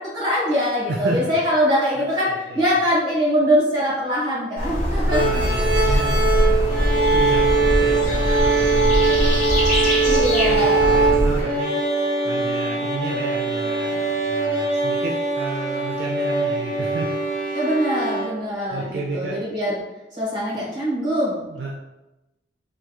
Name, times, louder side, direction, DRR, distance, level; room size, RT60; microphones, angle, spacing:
voice 1, 0.0-5.4 10.0-11.0 17.5-19.8 20.1-21.5, equal, 20° right, -6 dB, 1.3 m, -22 dB
voice 2, 0.9-1.2 2.0-2.6 5.1-10.0 10.5-17.1 18.7-19.5 21.4-21.7, right 2 dB, 60° right, -1 dB, 0.4 m, -31 dB
sound 1, 4.6-11.4, equal, 40° left, 0.9 m, -22 dB
sound 2, 5.1-18.2, right 3 dB, 15° left, 1.2 m, -22 dB
3.4 x 2.3 x 3.0 m, 0.99 s
head